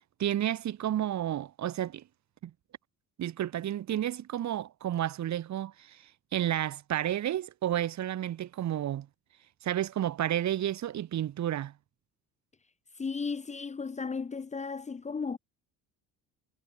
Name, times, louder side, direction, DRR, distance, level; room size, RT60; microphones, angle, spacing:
voice 1, 0.2-2.0 2.4-2.5 3.2-6.0 6.3-9.1 9.6-11.7, right 11 dB, 50° right, 5.5 m, -31 dB
voice 2, 13.0-15.4, left 5 dB, 20° left, 1.6 m, -35 dB
cardioid pair, 145°, 37 cm